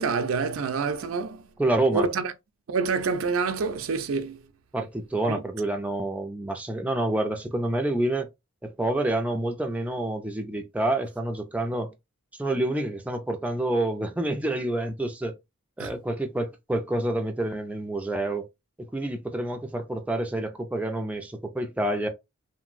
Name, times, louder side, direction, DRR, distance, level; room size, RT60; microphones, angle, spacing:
voice 1, 0.0-1.4 1.9-2.3 2.7-4.4 5.3-5.4 15.8-15.9, right 4 dB, 80° right, 0.5 m, -27 dB
voice 2, 1.6-2.1 4.7-8.3 8.6-11.9 12.4-15.3 15.8-18.5 18.8-22.1, right 1 dB, 5° right, 0.3 m, -28 dB
2.9 x 2.6 x 2.5 m
head